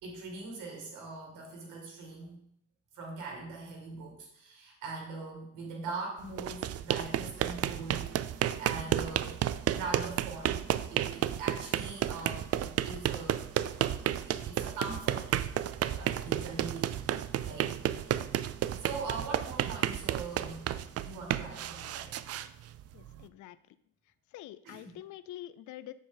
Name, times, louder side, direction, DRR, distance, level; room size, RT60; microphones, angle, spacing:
voice 1, 0.0-2.4 2.9-8.1 8.6-9.4 9.7-10.6 10.9-13.4 14.3-15.3 15.9-18.1 18.8-20.7 21.0-22.2 24.6-24.9, right 3 dB, 90° right, -1 dB, 2.5 m, -41 dB
sound 1, 6.3-23.2, right 11 dB, 55° right, 0.4 m, -32 dB
voice 2, 22.9-23.8 24.1-25.9, left 13 dB, 75° left, 14 dB, 0.5 m, -46 dB
7.3 x 7.1 x 3.9 m, 0.71 s
cardioid pair, 90°, 30 cm